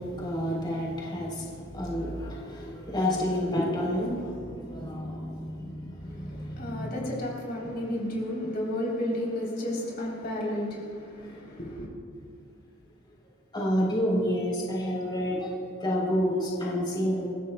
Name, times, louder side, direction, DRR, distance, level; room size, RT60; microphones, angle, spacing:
voice 1, 0.0-7.0 13.5-17.3, equal, 25° left, -3 dB, 3.5 m, -29 dB
voice 2, 6.0-11.9, left 1 dB, 55° left, -3 dB, 3.6 m, -32 dB
28.0 x 15.5 x 2.3 m, 2.3 s
head